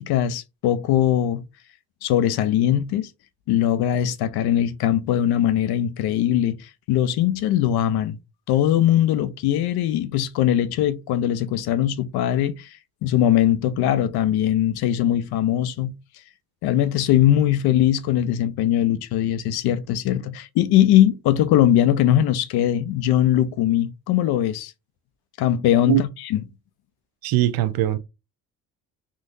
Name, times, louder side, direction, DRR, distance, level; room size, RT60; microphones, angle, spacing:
voice 1, 0.0-1.4 2.0-3.1 3.5-8.2 8.5-12.7 13.0-15.9 16.6-24.7 25.4-26.4, left 11 dB, 70° left, 0.6 m, -21 dB
voice 2, 27.2-28.0, right 13 dB, 65° right, 0.6 m, -21 dB
3.8 x 2.5 x 2.5 m
supercardioid pair, 65°, 40 cm